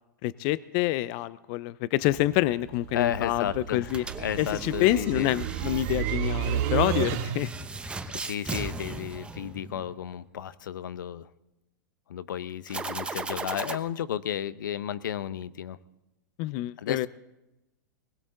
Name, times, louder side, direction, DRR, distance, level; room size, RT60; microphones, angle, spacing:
voice 1, 0.2-4.0 4.4-7.5 16.4-17.1, left 16 dB, 45° left, 18 dB, 0.5 m, -27 dB
sound 1, 2.0-7.7, right 10 dB, 50° right, 1.2 m, -32 dB
voice 2, 2.9-3.9 4.2-5.3 8.2-11.3 12.1-15.8 16.8-17.1, left 10 dB, 80° left, 16 dB, 0.7 m, -33 dB
sound 2, 3.8-10.0 12.7-13.8, right 3 dB, 10° right, 0.9 m, -38 dB
20.5 x 16.0 x 3.9 m, 0.95 s
hypercardioid pair, 125°, 10 cm